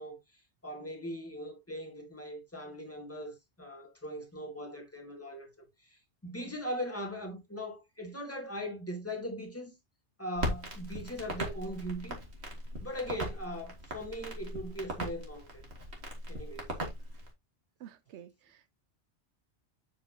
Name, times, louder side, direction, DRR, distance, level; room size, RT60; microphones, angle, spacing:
voice 1, 0.0-9.8 10.2-12.2 12.8-15.7 16.3-16.7, equal, 10° left, 2.3 m, -40 dB
Crackle, 10.3-17.3, equal, 70° right, 2.4 m, -39 dB
voice 2, 17.8-18.7, right 10 dB, 85° right, 0.9 m, -51 dB
7.4 x 6.0 x 2.8 m
omnidirectional pair, 1.1 m